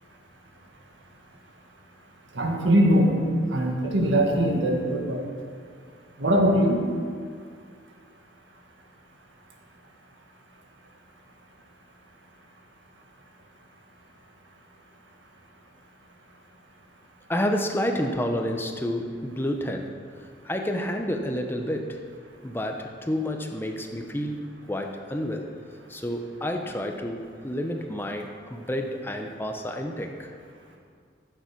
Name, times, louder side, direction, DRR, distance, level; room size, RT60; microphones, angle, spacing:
voice 1, 2.3-3.1 3.5-5.2 6.2-6.8, equal, 90° right, 0 dB, 1.9 m, -21 dB
voice 2, 17.3-22.0 22.4-25.6 25.9-30.3, equal, 10° left, 4 dB, 0.7 m, -30 dB
14.5 x 6.9 x 5.9 m, 2.1 s
head